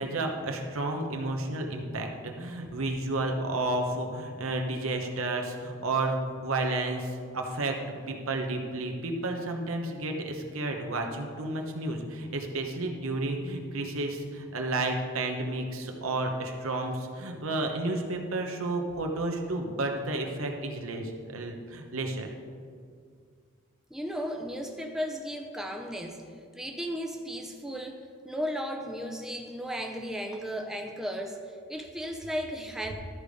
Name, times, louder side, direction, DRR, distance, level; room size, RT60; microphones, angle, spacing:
voice 1, 0.0-7.8 8.1-22.3, right 2 dB, 85° right, 3 dB, 1.1 m, -31 dB
voice 2, 23.9-26.2 26.5-32.9, equal, ahead, 2 dB, 0.5 m, -35 dB
12.5 x 5.1 x 5.3 m, 2.1 s
head